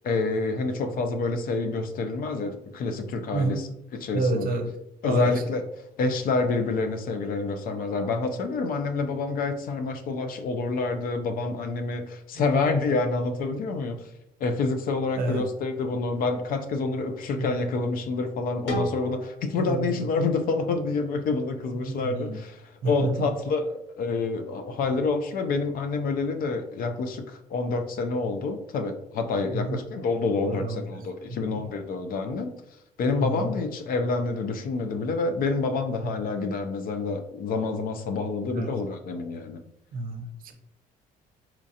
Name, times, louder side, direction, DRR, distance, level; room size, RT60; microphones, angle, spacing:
voice 1, 0.0-4.5 5.0-5.6 6.0-14.1 14.4-32.6 33.0-39.6, left 3 dB, 60° left, 7 dB, 0.5 m, -28 dB
voice 2, 4.1-4.7 5.1-5.4 12.4-12.5 15.2-15.4 17.4-17.5 19.7-20.1 21.8-22.4 22.8-23.3 29.5-29.8 30.4-31.0 31.3-31.6 33.2-33.5 38.5-38.7 39.9-40.5, right 2 dB, 60° right, 6 dB, 0.6 m, -29 dB
sound 1, 18.7-21.5, left 1 dB, 90° left, 0.9 m, -36 dB
4.4 x 2.4 x 2.7 m, 0.78 s
cardioid pair, 110°, 17 cm